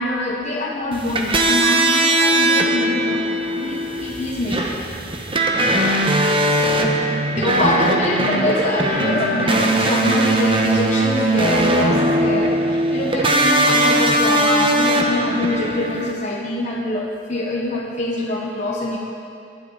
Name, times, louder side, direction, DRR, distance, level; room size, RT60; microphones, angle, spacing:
voice 1, 0.0-3.3 3.6-4.7 7.4-19.0, left 1 dB, 40° left, -3 dB, 1.1 m, -24 dB
sound 1, 0.9-16.1, right 1 dB, 30° right, 1.0 m, -19 dB
19.0 x 11.5 x 4.1 m, 2.5 s
head